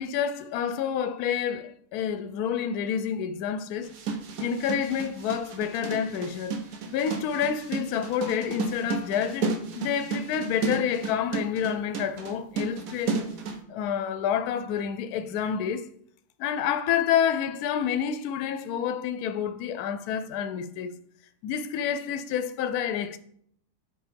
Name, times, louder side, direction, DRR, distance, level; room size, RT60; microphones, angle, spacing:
voice 1, 0.0-3.9 4.4-6.6 6.9-13.2 13.7-15.9 16.4-20.9 21.4-23.2, left 8 dB, 70° left, 1.0 m, -28 dB
sound 1, 3.8-13.6, right 4 dB, 60° right, 1.2 m, -32 dB
5.5 x 4.7 x 5.1 m
omnidirectional pair, 1.8 m